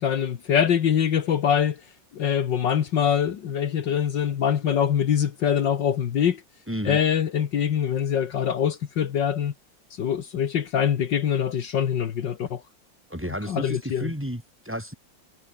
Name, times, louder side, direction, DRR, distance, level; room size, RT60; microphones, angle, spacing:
voice 1, 0.0-1.8 2.1-6.4 6.9-9.5 9.9-12.6 13.5-14.1, left 8 dB, 70° left, 1.9 m, -24 dB
voice 2, 6.7-7.0 13.1-14.9, equal, 5° right, 5.6 m, -32 dB
omnidirectional pair, 2.1 m